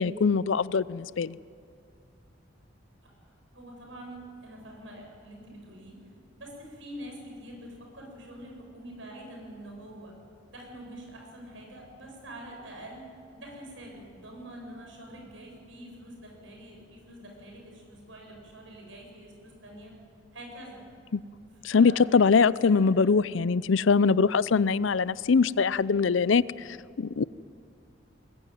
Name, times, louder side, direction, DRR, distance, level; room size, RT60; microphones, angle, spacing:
voice 1, 0.0-1.3 21.1-21.2 21.6-26.4 27.0-27.2, left 5 dB, 80° left, 18 dB, 0.5 m, -22 dB
voice 2, 3.0-6.1 6.4-10.1 10.5-13.1 13.3-19.9 20.3-20.9 21.7-23.2, right 1 dB, 80° right, 1 dB, 7.4 m, -45 dB
22.0 x 21.0 x 9.4 m, 2.3 s
head